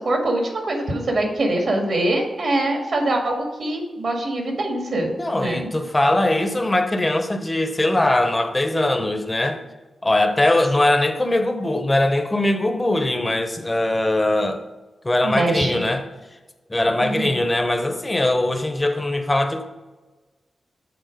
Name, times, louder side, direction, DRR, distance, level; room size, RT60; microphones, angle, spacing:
voice 1, 0.0-5.7 15.2-15.8 17.0-17.4, right 1 dB, 65° right, 1.9 m, -23 dB
voice 2, 5.2-9.6 10.0-14.6 15.0-16.4 16.7-19.6, left 1 dB, 25° left, 0.9 m, -21 dB
8.1 x 4.3 x 5.1 m
cardioid pair, 60°, 0 cm